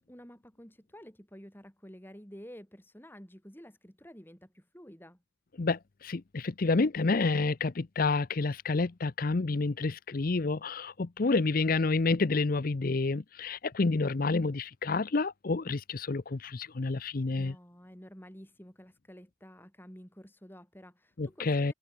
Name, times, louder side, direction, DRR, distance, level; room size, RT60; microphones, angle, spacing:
voice 1, 0.0-5.2 17.3-21.7, equal, 10° left, 6.9 m, -51 dB
voice 2, 5.6-17.5 21.2-21.7, left 3 dB, 45° left, 0.6 m, -29 dB
head